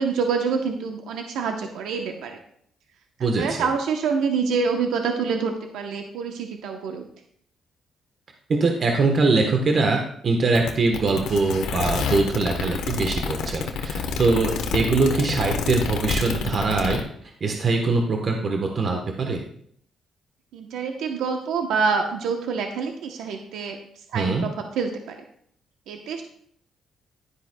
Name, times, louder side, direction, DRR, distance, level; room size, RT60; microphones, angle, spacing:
voice 1, 0.0-2.4 3.4-7.1 20.5-25.2 25.9-26.2, right 5 dB, 85° right, 4 dB, 0.9 m, -26 dB
voice 2, 3.2-3.7 8.5-17.0 17.4-19.4 24.1-24.4, right 3 dB, 50° right, 3 dB, 1.1 m, -22 dB
sound 1, 10.6-17.0, left 5 dB, 85° left, 1.1 m, -28 dB
11.5 x 10.0 x 2.3 m, 0.66 s
cardioid pair, 90°, 0 cm